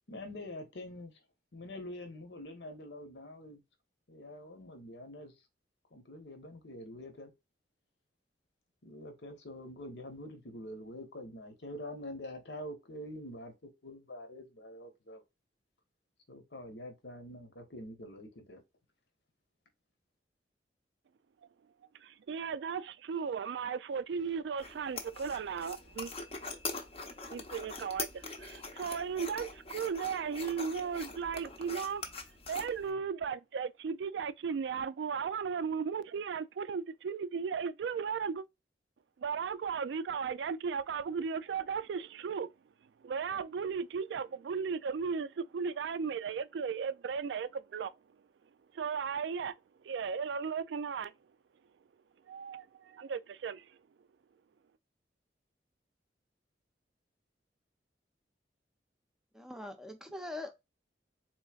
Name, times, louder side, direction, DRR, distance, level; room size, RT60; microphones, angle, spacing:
voice 1, 0.1-1.1 1.5-3.6 4.1-5.3 5.9-7.3 8.8-13.5 13.8-15.2 16.3-18.6, left 1 dB, 75° left, 1.1 m, -45 dB
voice 2, 22.0-26.1 27.3-32.0 32.5-38.5 39.2-42.5 43.0-47.9 48.7-49.5 49.8-51.1 52.3-53.8, right 6 dB, 75° right, 0.3 m, -36 dB
sound 1, 24.6-32.9, left 3 dB, 35° left, 0.7 m, -43 dB
voice 3, 59.3-60.5, left 2 dB, 5° right, 0.6 m, -42 dB
3.9 x 3.1 x 2.4 m
head